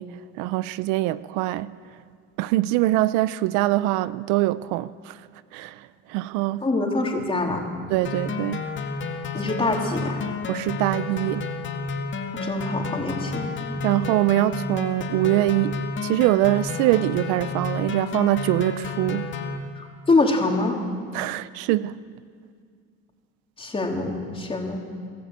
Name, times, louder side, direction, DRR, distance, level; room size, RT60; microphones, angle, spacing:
voice 1, 0.0-1.7 2.4-5.2 5.5-6.7 7.9-8.7 10.5-11.5 13.8-19.4 21.1-22.0, right 17 dB, 85° right, 0.6 m, -23 dB
voice 2, 6.6-7.6 9.3-10.2 12.4-13.5 19.8-20.8 23.6-24.8, left 2 dB, 20° left, 3.3 m, -24 dB
sound 1, 8.0-19.6, left 4 dB, 40° left, 2.1 m, -31 dB
25.5 x 14.0 x 8.2 m
cardioid pair, 110°, 29 cm